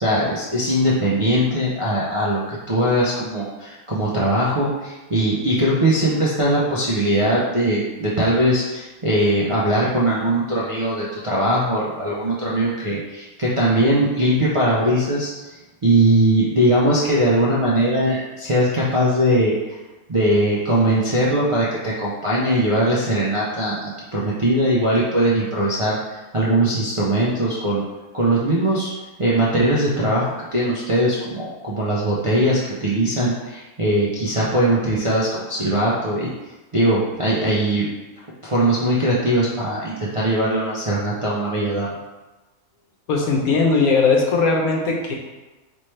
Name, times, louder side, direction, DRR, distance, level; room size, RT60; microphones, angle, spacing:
voice 1, 0.0-19.8 20.1-27.8 28.1-28.9 29.2-36.3 36.7-37.9 38.4-42.0, right 1 dB, 50° right, -8 dB, 0.4 m, -20 dB
voice 2, 43.1-45.1, left 4 dB, 85° left, 0 dB, 1.3 m, -18 dB
4.2 x 3.2 x 3.2 m, 1.1 s
omnidirectional pair, 1.5 m